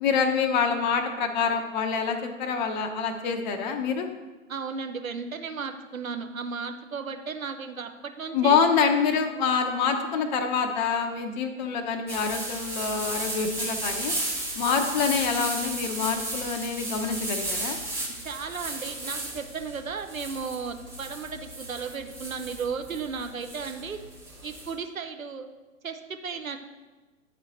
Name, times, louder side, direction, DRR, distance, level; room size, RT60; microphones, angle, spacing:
voice 1, 0.0-4.1 8.3-14.1 14.5-17.8, left 6 dB, 35° left, 4 dB, 0.6 m, -26 dB
voice 2, 4.5-8.6 18.1-24.0 24.4-25.5 25.8-26.6, right 5 dB, 80° right, 6 dB, 0.8 m, -35 dB
sound 1, 12.1-24.7, right 2 dB, 5° right, 0.9 m, -34 dB
9.2 x 4.2 x 4.1 m, 1.2 s
figure-of-eight pair, 115°, 40 cm